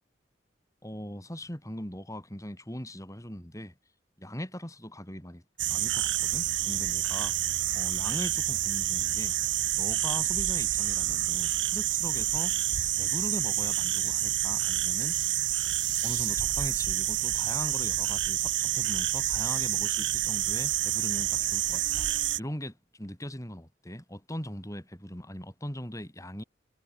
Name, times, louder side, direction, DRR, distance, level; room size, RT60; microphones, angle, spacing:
voice 1, 0.8-3.8 4.2-5.4 5.7-7.4 7.7-9.4 9.7-12.6 13.0-15.2 16.0-22.1 22.4-26.4, equal, 20° left, 7.1 m, -40 dB
sound 1, 5.6-22.4, right 14 dB, 90° right, 0.9 m, -28 dB
head